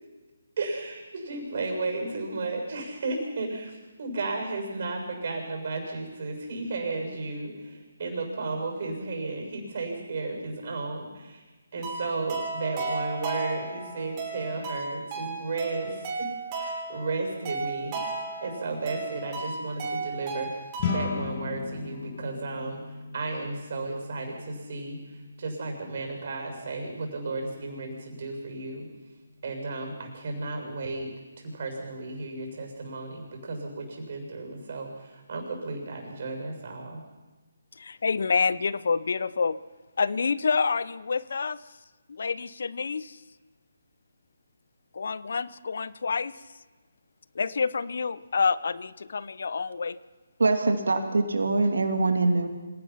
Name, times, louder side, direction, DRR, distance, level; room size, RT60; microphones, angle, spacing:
voice 1, 0.6-11.4 11.7-20.5 20.9-22.8 23.1-25.0 25.4-28.9 29.4-37.0, right 3 dB, 50° right, 3 dB, 7.0 m, -34 dB
sound 1, 11.8-21.2, right 3 dB, 25° right, 7.0 m, -35 dB
sound 2, 20.8-30.3, left 6 dB, 35° left, 1.8 m, -39 dB
voice 2, 37.8-39.6 40.0-41.6 42.1-43.2 44.9-46.3 47.3-50.0, left 5 dB, 60° left, 18 dB, 0.8 m, -28 dB
voice 3, 50.4-52.5, right 3 dB, 75° right, 5 dB, 2.7 m, -23 dB
26.0 x 17.5 x 5.9 m, 1.2 s
figure-of-eight pair, 150°, 0 cm